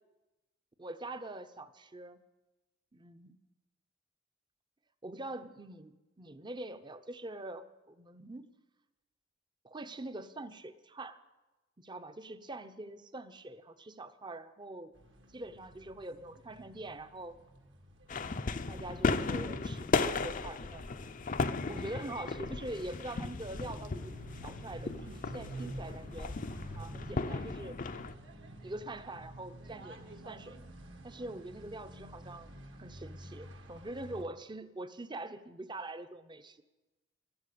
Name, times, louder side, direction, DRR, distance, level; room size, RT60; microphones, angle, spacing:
voice 1, 0.8-2.2 2.9-3.3 5.0-8.5 9.6-11.2 11.8-14.9 15.3-17.4 18.1-20.8 21.7-26.3 26.7-27.8 28.6-30.6 31.0-36.6, right 2 dB, 25° right, 11 dB, 0.7 m, -44 dB
sound 1, 14.9-34.2, right 1 dB, 70° right, 1.8 m, -50 dB
sound 2, 18.1-28.1, left 3 dB, 45° left, 0.6 m, -35 dB
13.0 x 12.5 x 8.4 m, 1.1 s
head